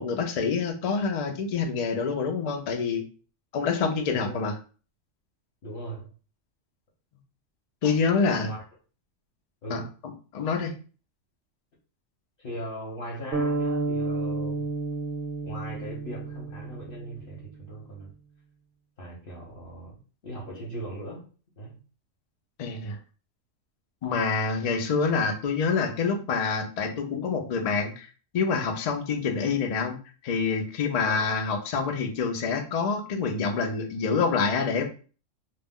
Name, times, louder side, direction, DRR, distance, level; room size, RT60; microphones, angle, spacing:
voice 1, 0.0-3.0 3.5-4.5 7.8-8.5 9.7-9.8 10.3-10.7 22.6-23.0 24.0-28.1 28.3-30.0 30.2-34.9, left 5 dB, 90° left, 0.3 m, -26 dB
voice 2, 4.2-4.5 5.6-6.1 8.4-8.6 9.6-9.9 12.4-14.7 15.4-18.1 19.0-21.2 21.6-21.8 31.0-31.2, right 1 dB, 50° left, 0.9 m, -39 dB
sound 1, 13.3-17.6, right 3 dB, 65° right, 0.8 m, -31 dB
2.3 x 2.0 x 3.5 m
omnidirectional pair, 1.3 m